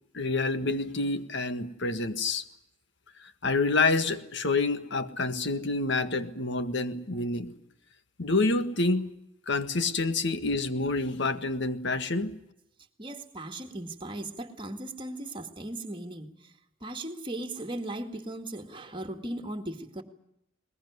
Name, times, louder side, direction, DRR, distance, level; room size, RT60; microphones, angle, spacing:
voice 1, 0.1-2.4 3.4-7.5 8.2-9.1 9.5-12.3, left 3 dB, 60° left, 10 dB, 1.7 m, -28 dB
voice 2, 13.0-16.3 16.8-20.0, right 1 dB, 25° right, 6 dB, 2.1 m, -37 dB
21.0 x 21.0 x 9.6 m, 0.80 s
head